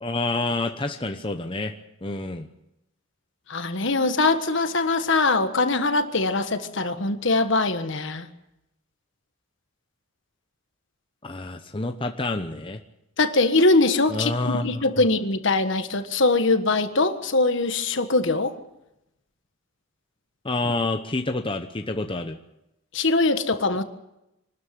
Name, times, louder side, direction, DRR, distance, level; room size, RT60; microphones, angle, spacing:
voice 1, 0.0-1.7 2.0-2.5 11.2-12.8 14.1-14.8 20.4-22.4, left 2 dB, 25° left, 0.8 m, -28 dB
voice 2, 3.5-8.3 13.2-18.6 22.9-23.8, left 3 dB, 60° left, 1.5 m, -22 dB
24.0 x 13.0 x 9.3 m
head